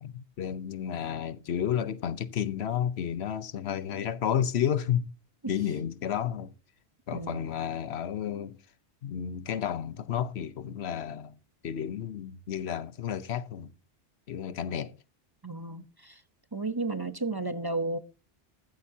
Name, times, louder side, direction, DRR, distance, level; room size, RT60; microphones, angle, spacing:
voice 1, 0.0-5.1 5.5-6.5 7.1-8.6 9.0-11.3 11.6-13.7 14.3-14.9, left 9 dB, 85° left, 1.1 m, -31 dB
voice 2, 15.4-16.2 16.5-18.0, right 3 dB, 25° right, 0.7 m, -33 dB
14.5 x 12.5 x 2.8 m
omnidirectional pair, 1.1 m